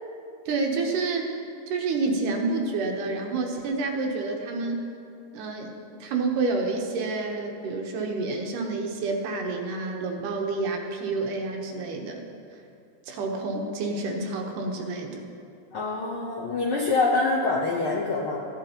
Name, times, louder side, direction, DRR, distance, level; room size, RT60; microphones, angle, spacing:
voice 1, 0.5-1.3 1.7-4.8 5.3-5.7 6.0-12.2 13.1-15.2, right 3 dB, 85° right, 2 dB, 2.6 m, -28 dB
voice 2, 15.7-18.4, left 3 dB, 75° left, -3 dB, 1.2 m, -25 dB
15.5 x 9.6 x 2.9 m, 2.5 s
omnidirectional pair, 3.6 m